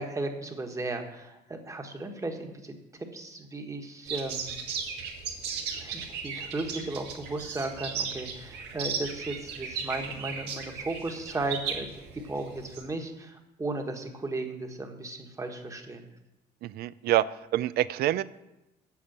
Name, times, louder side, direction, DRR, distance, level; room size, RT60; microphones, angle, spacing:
voice 1, 0.0-2.7 3.1-4.5 5.5-11.9 12.1-16.1, right 2 dB, 20° right, 4 dB, 1.4 m, -35 dB
sound 1, 4.1-12.8, right 6 dB, 85° right, 1.8 m, -36 dB
voice 2, 16.6-17.3 17.5-18.2, right 14 dB, 70° right, 17 dB, 0.4 m, -26 dB
8.4 x 6.8 x 7.2 m, 0.95 s
cardioid pair, 110°, 17 cm